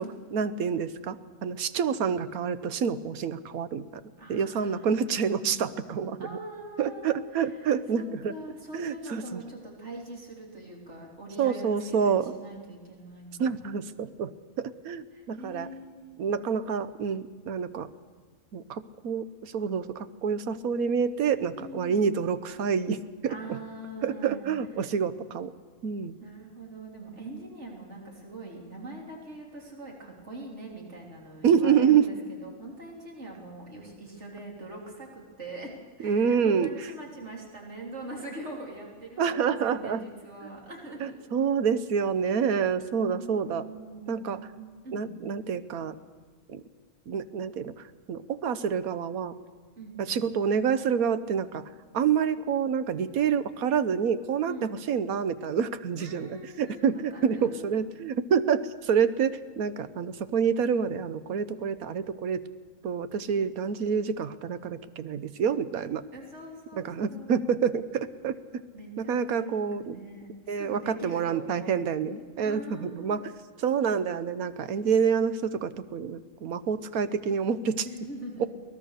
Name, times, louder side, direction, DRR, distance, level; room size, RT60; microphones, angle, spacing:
voice 1, 0.0-3.9 4.3-6.4 6.8-8.3 8.7-9.4 11.4-12.3 13.4-14.3 14.6-15.7 16.2-17.9 18.5-23.4 24.0-25.5 25.8-26.2 31.4-32.1 36.0-36.7 39.2-40.1 41.0-43.7 44.1-44.4 44.9-45.9 46.5-46.6 47.1-47.7 48.1-49.3 50.0-51.6 51.9-62.4 62.8-66.0 66.7-68.4 69.0-70.0 70.5-73.2 73.6-77.9, right 7 dB, 80° right, 13 dB, 1.3 m, -27 dB
voice 2, 4.2-5.6 6.2-13.7 15.1-16.2 21.6-22.1 23.3-24.5 24.8-24.9 26.2-35.7 36.0-41.2 42.9-45.2 49.8-50.2 54.4-54.8 56.0-57.8 66.1-67.6 68.7-73.3 77.8-78.5, right 2 dB, 50° right, -1 dB, 3.9 m, -43 dB
23.5 x 18.5 x 6.6 m, 1.5 s
omnidirectional pair, 1.5 m